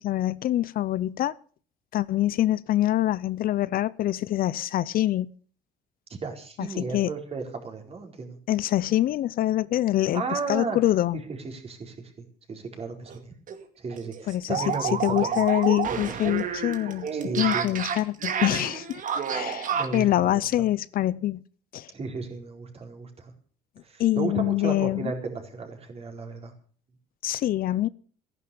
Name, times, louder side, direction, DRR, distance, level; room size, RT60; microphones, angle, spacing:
voice 1, 0.0-1.3 1.9-5.3 6.6-7.1 8.5-11.2 14.3-14.6 15.0-17.1 17.4-19.0 19.3-21.4 21.7-21.9 24.0-25.1 27.2-27.9, left 13 dB, 60° left, 0.6 m, -25 dB
voice 2, 6.1-8.4 10.1-10.8 11.4-13.3 13.8-15.4 17.1-17.8 19.7-20.4 21.9-23.3 23.8-26.5, right 4 dB, 35° right, 4.4 m, -34 dB
sound 1, 13.1-13.2 13.5-13.6 13.9-20.1, right 7 dB, 50° right, 2.3 m, -30 dB
15.0 x 11.0 x 7.0 m
cardioid pair, 110°, 17 cm